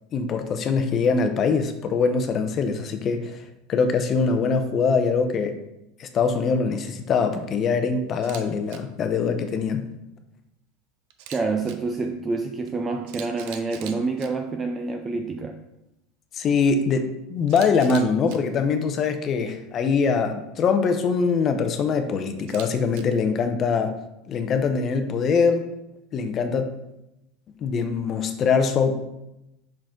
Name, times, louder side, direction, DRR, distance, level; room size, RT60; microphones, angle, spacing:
voice 1, 0.1-5.6 6.0-9.9 16.3-23.9 24.3-25.7 26.1-26.7 27.6-29.0, left 5 dB, 35° left, 7 dB, 0.7 m, -23 dB
Camera, 8.1-8.4 8.7-8.8 11.1-11.7 12.7-12.8 13.1-14.3 17.5-18.4 22.4-23.0, right 9 dB, 65° right, 0.6 m, -41 dB
voice 2, 11.3-15.6, right 3 dB, 20° right, 4 dB, 0.4 m, -27 dB
5.9 x 5.0 x 3.7 m, 0.88 s
supercardioid pair, 140°, 0 cm